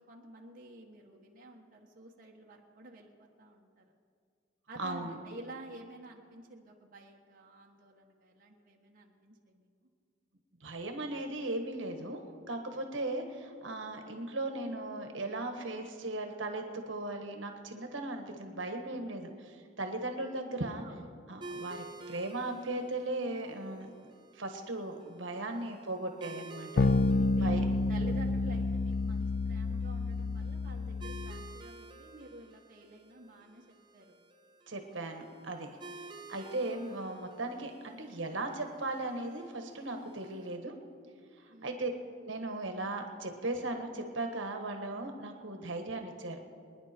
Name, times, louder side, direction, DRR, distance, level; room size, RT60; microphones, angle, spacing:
voice 1, 0.0-3.9 4.7-9.6 20.8-21.2 26.8-34.2 41.5-41.8, right 1 dB, 45° right, -1 dB, 1.5 m, -51 dB
voice 2, 4.8-5.2 10.6-12.2 12.5-20.8 21.3-23.9 24.3-26.8 27.4-27.6 34.7-35.8 36.3-40.7 41.4-41.9 42.2-46.4, right 2 dB, 75° right, 4 dB, 1.5 m, -37 dB
sound 1, 21.4-40.6, right 3 dB, 25° right, 0.8 m, -52 dB
sound 2, 26.8-31.5, left 3 dB, 50° left, 0.4 m, -29 dB
25.5 x 10.0 x 4.5 m, 2.2 s
head